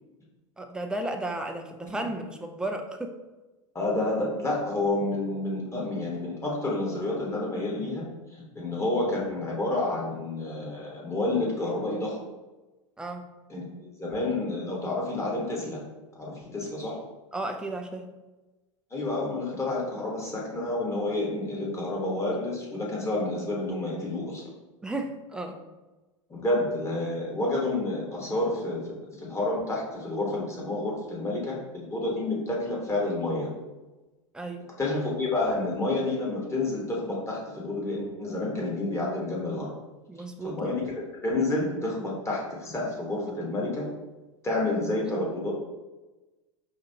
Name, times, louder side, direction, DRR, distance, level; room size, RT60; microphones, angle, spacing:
voice 1, 0.6-3.2 13.0-13.2 17.3-18.1 24.8-25.6 34.3-34.7 40.1-40.8, right 2 dB, 5° right, 4 dB, 0.4 m, -34 dB
voice 2, 3.7-8.1 8.5-12.2 13.5-15.8 16.2-17.0 18.9-24.4 26.3-33.5 34.8-39.7 40.4-40.8 41.2-43.9 44.4-45.5, left 2 dB, 15° left, -3 dB, 1.3 m, -29 dB
5.1 x 2.4 x 2.8 m, 1.1 s
hypercardioid pair, 90°, 17 cm